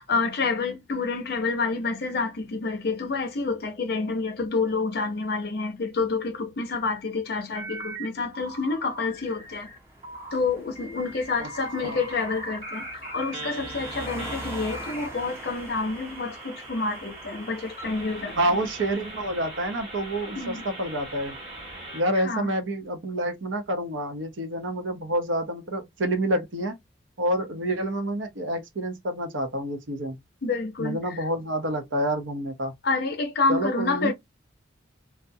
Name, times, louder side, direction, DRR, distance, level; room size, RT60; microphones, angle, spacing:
voice 1, 0.0-9.7 10.3-18.6 20.4-20.6 22.2-22.5 30.4-31.2 32.8-34.1, left 3 dB, 50° left, 0.6 m, -28 dB
sound 1, 7.5-8.1 8.3-9.8 10.0-10.4 10.8-22.0, right 1 dB, 30° right, 0.9 m, -40 dB
sound 2, 9.0-19.3, right 1 dB, 15° right, 0.6 m, -43 dB
voice 2, 18.4-21.4 21.9-26.8 27.2-30.2 30.8-32.7 33.5-34.1, right 1 dB, 70° right, 0.7 m, -28 dB
2.3 x 2.0 x 2.6 m
head